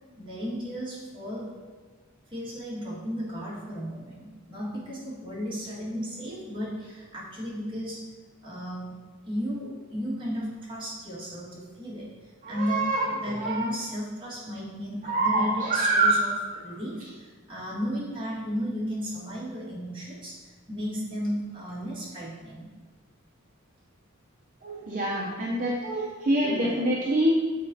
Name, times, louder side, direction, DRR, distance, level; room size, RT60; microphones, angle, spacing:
voice 1, 0.2-1.6 2.3-8.0 8.4-8.9 9.2-16.3 16.6-22.7, equal, 25° right, -7 dB, 1.7 m, -34 dB
voice 2, 12.4-13.6 15.0-16.8 24.6-27.4, right 2 dB, 40° right, -3 dB, 0.6 m, -26 dB
8.6 x 4.1 x 2.7 m, 1.4 s
head